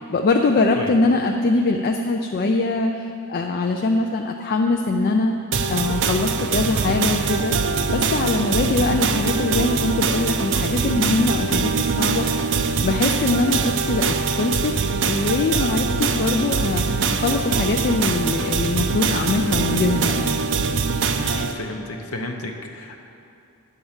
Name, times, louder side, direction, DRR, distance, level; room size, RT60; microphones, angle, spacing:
voice 1, 0.1-5.4 5.7-7.6 7.9-12.5 12.8-14.7 15.0-20.4, left 3 dB, 45° left, 3 dB, 0.4 m, -22 dB
sound 1, 5.5-21.5, right 5 dB, 60° right, 0.5 m, -23 dB
voice 2, 21.2-23.0, left 2 dB, 75° left, 2 dB, 0.8 m, -32 dB
10.0 x 4.6 x 7.2 m, 2.7 s
head